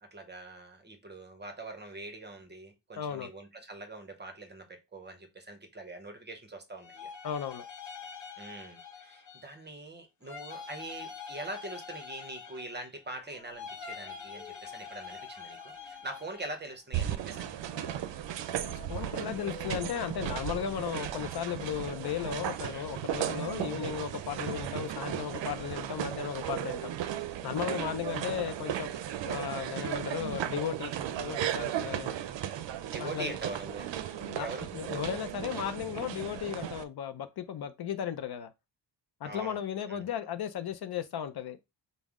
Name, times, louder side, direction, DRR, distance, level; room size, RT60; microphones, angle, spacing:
voice 1, 0.0-7.1 8.4-17.6 20.9-21.1 22.7-22.9 26.2-26.7 27.7-28.0 29.7-30.0 32.9-33.9 34.3-34.7 39.2-39.6 39.9-40.1, right 2 dB, 25° right, 0.7 m, -43 dB
voice 2, 3.0-3.3 7.2-7.6 18.7-26.9 27.4-28.9 29.3-32.1 33.0-33.3 34.2-34.5 34.7-38.5 39.2-41.6, left 9 dB, 60° left, 0.5 m, -35 dB
sound 1, 6.8-9.6 10.2-13.0 13.5-16.5, left 6 dB, 40° left, 1.0 m, -45 dB
sound 2, 13.1-27.3, left 4 dB, 15° left, 0.6 m, -54 dB
sound 3, 16.9-36.8, right 11 dB, 75° right, 0.5 m, -36 dB
5.3 x 2.0 x 3.5 m
wide cardioid pair, 150°, 44 cm